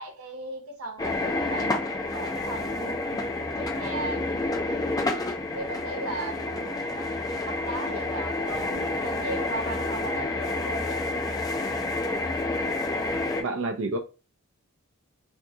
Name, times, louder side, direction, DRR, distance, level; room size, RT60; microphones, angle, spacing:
voice 1, 0.0-1.8 2.1-3.0 3.6-4.3 5.5-7.1 7.4-11.3, right 2 dB, 90° right, 0.9 m, -37 dB
sound 1, 1.0-13.4, left 2 dB, 15° left, 0.4 m, -29 dB
voice 2, 13.4-14.0, right 2 dB, 65° right, 0.5 m, -29 dB
2.6 x 2.6 x 3.5 m
head